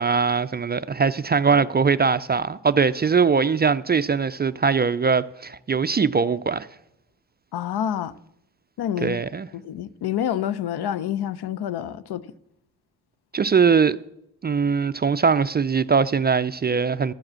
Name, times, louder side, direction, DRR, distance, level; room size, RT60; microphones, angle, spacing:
voice 1, 0.0-6.7 9.0-9.5 13.3-14.0 14.4-17.1, right 5 dB, 25° right, 0.3 m, -21 dB
voice 2, 7.5-8.1 8.8-9.2 9.5-12.3, left 10 dB, 70° left, 0.7 m, -28 dB
13.0 x 4.8 x 7.5 m
cardioid pair, 60°, 40 cm